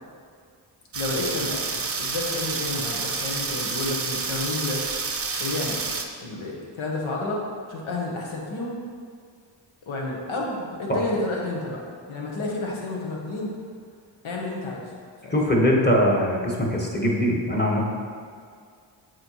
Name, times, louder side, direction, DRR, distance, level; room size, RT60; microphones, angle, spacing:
voice 1, 0.9-1.6 2.0-4.8 5.4-5.8 6.2-7.4 7.7-8.8 9.9-11.8 12.1-13.5 14.2-14.8 15.2-15.3, left 2 dB, 90° left, -2 dB, 1.1 m, -30 dB
sound 1, 0.9-6.0, right 4 dB, 30° right, 0.6 m, -29 dB
voice 2, 15.3-17.8, equal, 20° left, -2 dB, 1.3 m, -21 dB
7.7 x 4.3 x 3.0 m, 2.2 s
cardioid pair, 55°, 48 cm